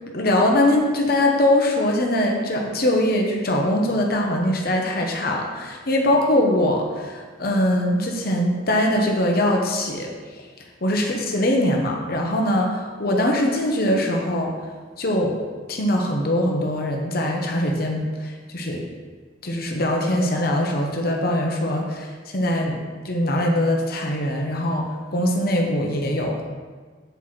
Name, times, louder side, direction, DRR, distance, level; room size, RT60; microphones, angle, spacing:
voice 1, 0.1-10.1 10.8-14.5 15.0-15.3 15.7-18.8 19.4-22.8 23.0-26.4, left 1 dB, 55° left, 1 dB, 1.0 m, -22 dB
8.0 x 4.7 x 4.2 m, 1.5 s
head